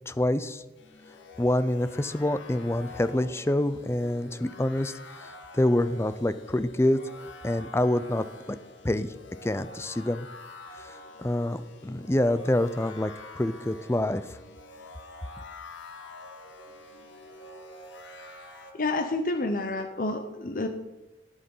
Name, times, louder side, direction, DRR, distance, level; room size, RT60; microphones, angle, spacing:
voice 1, 0.1-0.6 1.4-7.0 7.4-8.3 8.8-9.1 9.4-10.3 10.8-14.4, left 1 dB, 15° left, 13 dB, 0.4 m, -27 dB
sound 1, 0.8-18.7, left 3 dB, 90° left, 1.6 m, -47 dB
voice 2, 18.7-20.7, left 2 dB, 45° left, 6 dB, 0.8 m, -29 dB
18.0 x 6.4 x 5.5 m, 1.0 s
head